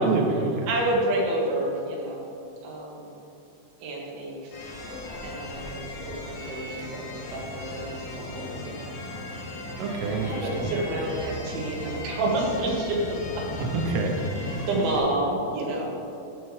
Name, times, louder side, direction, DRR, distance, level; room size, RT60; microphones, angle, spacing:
voice 1, 0.0-0.7 9.8-10.7 13.6-14.2, right 3 dB, 85° right, 1 dB, 2.3 m, -26 dB
voice 2, 0.7-2.3 2.6-3.1 3.8-4.5 5.2-8.9 10.0-13.4 14.7-15.8, right 1 dB, 70° right, -3 dB, 3.5 m, -29 dB
sound 1, 4.5-15.0, left 1 dB, 60° left, 3.0 m, -36 dB
16.5 x 5.5 x 3.2 m, 2.8 s
omnidirectional pair, 6.0 m